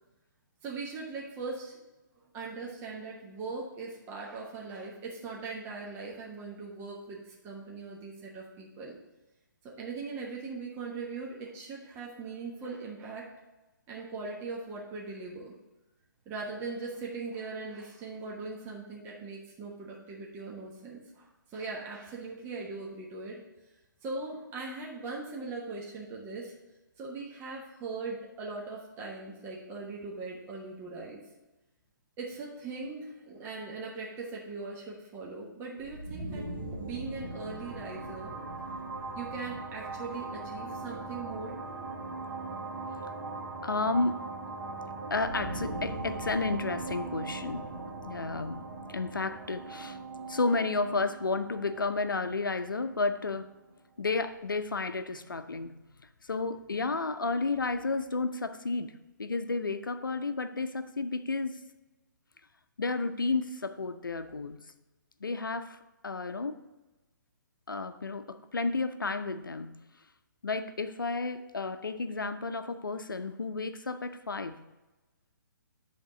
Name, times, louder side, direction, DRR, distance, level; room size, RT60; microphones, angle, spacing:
voice 1, 0.6-1.8 2.3-9.0 9.6-13.3 13.9-15.5 16.3-23.4 24.0-26.5 27.0-31.2 32.2-36.5 36.7-38.3 39.1-41.5, right 3 dB, 20° right, -4 dB, 1.2 m, -40 dB
sound 1, 35.8-53.4, right 3 dB, 80° right, 1.7 m, -40 dB
voice 2, 43.6-44.3 45.1-47.7 48.0-50.0 50.3-53.5 54.0-55.7 56.2-58.9 59.2-61.6 62.8-64.6 65.2-66.6 67.7-69.7 70.4-74.6, left 3 dB, 80° left, 11 dB, 0.6 m, -32 dB
10.5 x 3.6 x 4.9 m, 1.1 s
figure-of-eight pair, 130°, 11 cm